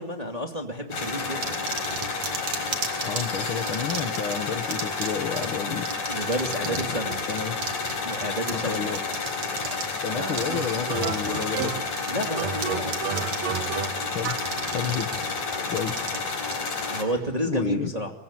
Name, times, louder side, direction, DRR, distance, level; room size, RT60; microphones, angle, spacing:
voice 1, 0.0-1.6 6.1-7.2 8.0-8.9 10.2-10.5 12.1-13.0 16.9-18.1, equal, 15° right, 2 dB, 1.8 m, -30 dB
sound 1, 0.9-17.0, left 4 dB, 45° left, 5.5 m, -30 dB
sound 2, 1.4-3.2 3.7-4.4 4.7-5.1 5.4-5.5 5.9-6.9 7.1-9.8 10.4-10.5 11.0-11.7 12.0-12.7 12.9-13.9 14.2-16.6, right 6 dB, 45° right, 3.3 m, -33 dB
voice 2, 3.0-5.9 6.6-7.0 7.3-7.6 8.5-9.0 10.0-11.8 14.1-15.1 15.7-16.1 17.4-17.9, left 7 dB, 80° left, 6 dB, 1.1 m, -31 dB
sound 3, 10.5-12.0 12.3-14.6, right 9 dB, 70° right, 1.7 m, -32 dB
25.5 x 23.0 x 9.9 m, 1.0 s
omnidirectional pair, 4.4 m